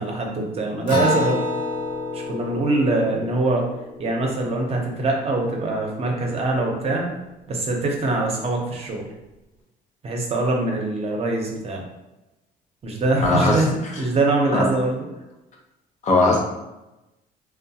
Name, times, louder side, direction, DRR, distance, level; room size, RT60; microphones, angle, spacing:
voice 1, 0.0-1.4 2.1-3.7 4.0-7.1 7.5-9.1 10.0-11.8 12.8-15.1, right 2 dB, 35° right, 0 dB, 0.6 m, -23 dB
Acoustic guitar, 0.9-5.8, left 2 dB, 85° left, 0.9 m, -29 dB
voice 2, 13.2-13.6 14.5-14.7 16.0-16.4, left 2 dB, 45° left, 0 dB, 0.7 m, -18 dB
2.9 x 2.0 x 2.7 m, 0.99 s
cardioid pair, 110°, 17 cm